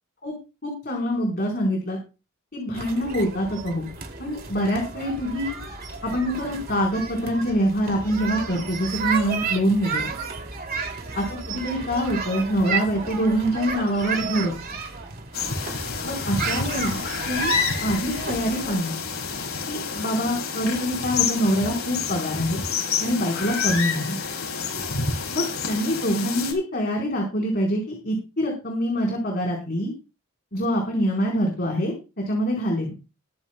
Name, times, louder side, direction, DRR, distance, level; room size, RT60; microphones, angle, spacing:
voice 1, 0.6-2.0 2.5-3.9 4.2-5.6 6.0-10.1 11.2-14.5 16.0-17.6 17.8-18.9 19.6-22.6 23.0-24.2 25.3-29.9 30.5-31.9 32.3-32.9, equal, 45° left, 0 dB, 4.2 m, -25 dB
sound 1, 2.7-18.7, right 5 dB, 45° right, 2.6 m, -32 dB
sound 2, 15.3-26.5, left 5 dB, 90° left, 5.9 m, -28 dB
22.5 x 10.5 x 2.2 m, 0.29 s
head